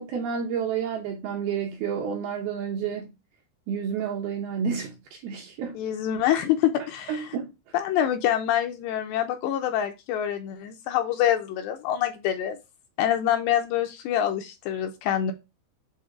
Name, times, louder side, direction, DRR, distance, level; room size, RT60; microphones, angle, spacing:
voice 1, 0.0-3.1 3.7-5.8 7.1-7.5, right 7 dB, 75° right, 2.3 m, -30 dB
voice 2, 5.7-7.3 7.7-12.6 13.0-15.3, left 11 dB, 80° left, 2.6 m, -26 dB
7.9 x 2.7 x 4.8 m
omnidirectional pair, 5.3 m